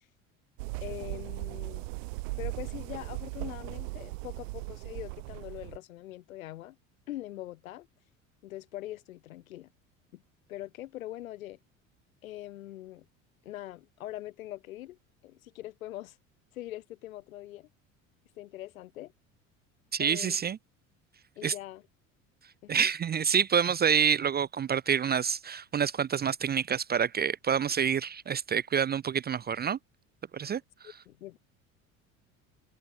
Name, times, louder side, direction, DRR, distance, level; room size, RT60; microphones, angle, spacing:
sound 1, 0.6-5.8, right 26 dB, 65° right, 1.0 m, -38 dB
voice 1, 0.8-1.9 2.4-6.8 7.1-7.9 8.4-9.7 10.1-10.2 10.5-11.6 12.2-13.1 13.4-15.0 15.2-16.2 16.5-17.7 18.4-19.1 20.0-20.4 21.4-21.8 22.6-22.9 30.8-31.4, left 15 dB, 75° left, 3.8 m, -42 dB
voice 2, 19.9-20.6 21.4-21.5 22.7-29.8 30.3-30.6, right 7 dB, 25° right, 0.6 m, -27 dB
hypercardioid pair, 65°, 41 cm